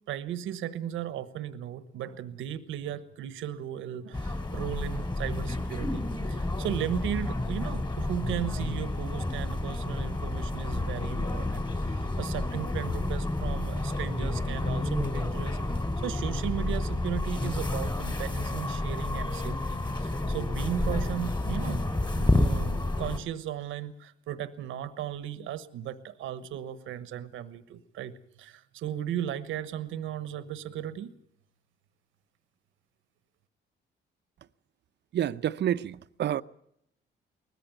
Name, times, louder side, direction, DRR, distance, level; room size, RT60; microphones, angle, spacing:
voice 1, 0.1-21.8 22.1-31.1, right 10 dB, 85° right, 1.2 m, -36 dB
sound 1, 4.1-23.2, left 2 dB, 20° left, 3.0 m, -30 dB
voice 2, 35.1-36.4, right 11 dB, 60° right, 0.7 m, -28 dB
20.0 x 14.5 x 9.3 m
cardioid pair, 90°, 20 cm